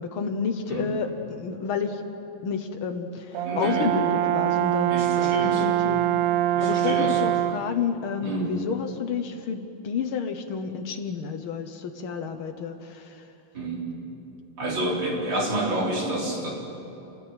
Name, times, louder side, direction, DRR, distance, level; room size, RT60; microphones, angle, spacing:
voice 1, 0.0-2.0 2.4-6.0 6.6-13.2, left 6 dB, 80° left, 5 dB, 1.1 m, -30 dB
Brass instrument, 3.3-7.8, right 12 dB, 75° right, 1.6 m, -24 dB
voice 2, 3.4-3.9 4.9-5.6 6.5-7.2 8.2-8.6 13.5-13.9 14.6-16.5, right 1 dB, 30° right, -3 dB, 4.8 m, -29 dB
27.0 x 19.0 x 9.0 m, 2.9 s
omnidirectional pair, 4.1 m